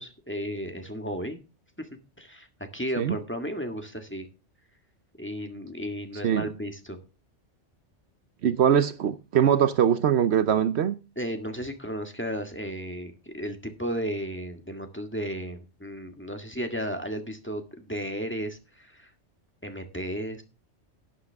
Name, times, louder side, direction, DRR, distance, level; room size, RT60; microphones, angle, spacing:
voice 1, 0.0-1.4 1.8-1.9 2.2-2.5 2.7-4.3 5.2-7.0 11.2-19.1 19.6-20.4, equal, 10° left, 1.7 m, -34 dB
voice 2, 8.4-10.9, right 9 dB, 70° right, 0.9 m, -22 dB
12.0 x 9.5 x 3.5 m
omnidirectional pair, 1.2 m